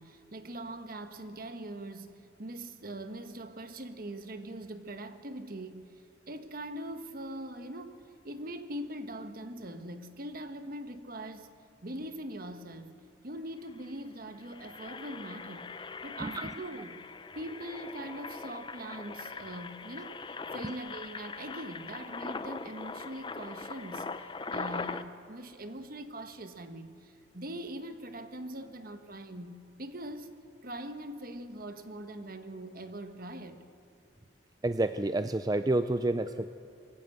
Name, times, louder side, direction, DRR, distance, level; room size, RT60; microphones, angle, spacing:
voice 1, 0.0-5.9 6.3-11.5 11.8-13.0 13.2-15.7 16.0-17.0 17.3-20.2 20.5-24.1 24.5-30.3 30.6-33.6, right 1 dB, 50° right, 1.3 m, -42 dB
Engine, 13.3-13.4 13.6-13.9 14.3-25.0, left 4 dB, 25° left, 0.6 m, -41 dB
voice 2, 34.6-36.5, right 2 dB, 20° right, 0.4 m, -29 dB
23.5 x 15.0 x 7.9 m
head